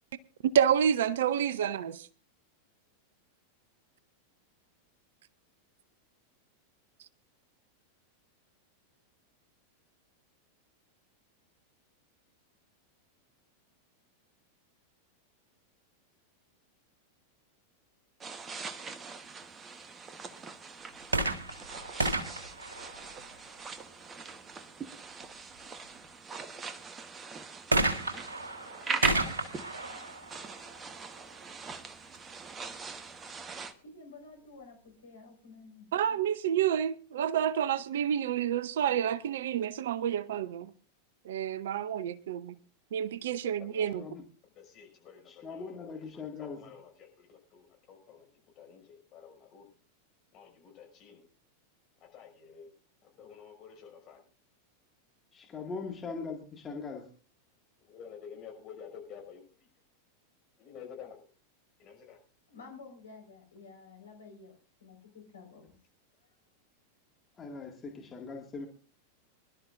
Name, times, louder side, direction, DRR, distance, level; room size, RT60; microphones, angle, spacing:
voice 1, 0.5-2.1 35.9-40.7 41.2-42.6 42.9-44.0, right 9 dB, 60° right, 0.7 m, -29 dB
sound 1, 18.2-33.7, right 5 dB, 20° right, 1.2 m, -41 dB
sound 2, 21.0-23.6 27.7-31.3 32.1-32.2, right 2 dB, 75° right, 1.6 m, -32 dB
voice 2, 33.7-36.2 62.0-62.2 62.5-64.5 64.8-65.7 66.2-66.3, left 4 dB, 70° left, 4.6 m, -52 dB
voice 3, 43.6-44.1 44.5-46.0 46.4-48.3 48.6-49.7 50.3-51.3 52.1-52.7 53.0-54.2 57.9-59.4 60.6-61.2 61.8-62.2, left 7 dB, 35° left, 5.8 m, -50 dB
voice 4, 45.3-46.7 55.3-57.1 67.4-68.7, left 4 dB, 20° left, 2.1 m, -40 dB
25.0 x 12.0 x 2.6 m
figure-of-eight pair, 90°, 0 cm